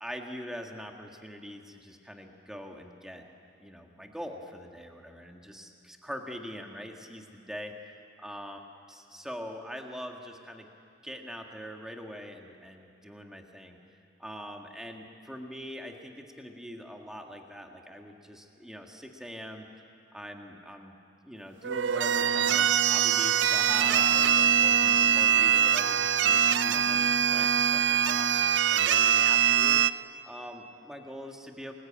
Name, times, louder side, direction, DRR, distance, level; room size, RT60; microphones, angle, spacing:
voice 1, 0.0-3.2 3.6-7.7 8.2-8.6 8.9-10.7 11.0-13.8 14.2-19.6 20.1-20.9 21.2-28.3 28.7-29.8 30.2-31.7, equal, 5° right, 2 dB, 1.7 m, -43 dB
sound 1, 21.6-29.9, right 9 dB, 70° right, 0.5 m, -23 dB
28.0 x 20.5 x 8.7 m, 2.5 s
head